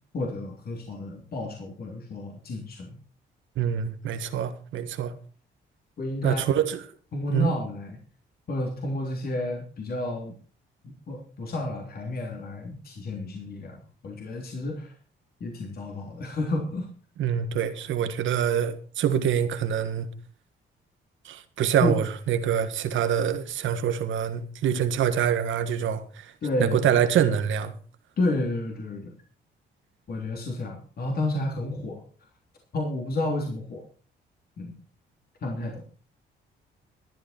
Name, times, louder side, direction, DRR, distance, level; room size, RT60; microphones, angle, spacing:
voice 1, 0.1-3.0 6.0-6.4 7.1-8.0 8.5-10.3 10.8-14.9 15.4-16.9 21.8-21.9 26.4-26.9 28.2-29.1 30.1-32.0 32.7-33.8 34.6-34.7 35.4-35.8, left 2 dB, 50° left, 3.3 m, -31 dB
voice 2, 3.6-5.1 6.2-6.8 7.3-7.5 17.2-20.1 21.2-26.3 26.6-27.7, right 8 dB, 75° right, 1.6 m, -25 dB
14.0 x 11.0 x 4.4 m
cardioid pair, 90°, 20 cm